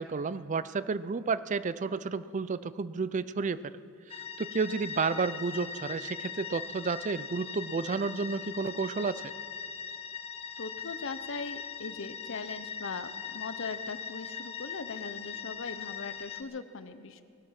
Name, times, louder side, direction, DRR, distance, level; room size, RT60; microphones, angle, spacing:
voice 1, 0.0-3.6 4.1-9.3, right 4 dB, 35° right, 15 dB, 0.4 m, -31 dB
sound 1, 4.1-16.4, left 7 dB, 30° left, 0.7 m, -40 dB
voice 2, 10.6-17.2, left 4 dB, 65° left, 12 dB, 0.8 m, -40 dB
19.5 x 12.0 x 5.9 m, 2.6 s
head